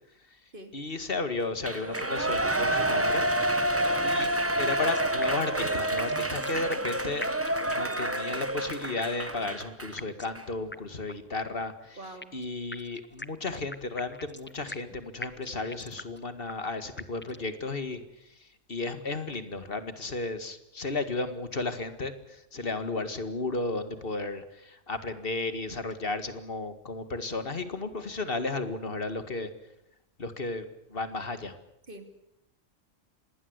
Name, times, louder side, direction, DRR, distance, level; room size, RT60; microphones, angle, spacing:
voice 1, 0.7-3.2 4.0-4.3 4.6-7.3 7.6-12.0 12.3-29.5 30.2-31.6, left 3 dB, 50° left, 10 dB, 2.2 m, -34 dB
Shout / Cheering, 1.6-10.0 10.4-10.5, right 1 dB, 10° right, 1.2 m, -28 dB
sound 1, 2.0-2.4 2.7-2.8 3.1-3.2 3.6-4.4 4.7-6.9 7.2-8.2 8.5-8.6 9.0-9.5 10.0-10.4 10.7-10.8 11.1-11.2 11.6-12.4 12.7-14.9 15.2-16.2 16.5-16.6 17.0-17.5, left 2 dB, 10° left, 0.7 m, -42 dB
voice 2, 12.0-12.4 31.9-32.3, right 1 dB, 45° right, 7 dB, 3.1 m, -45 dB
26.0 x 20.0 x 8.2 m, 0.81 s
omnidirectional pair, 1.3 m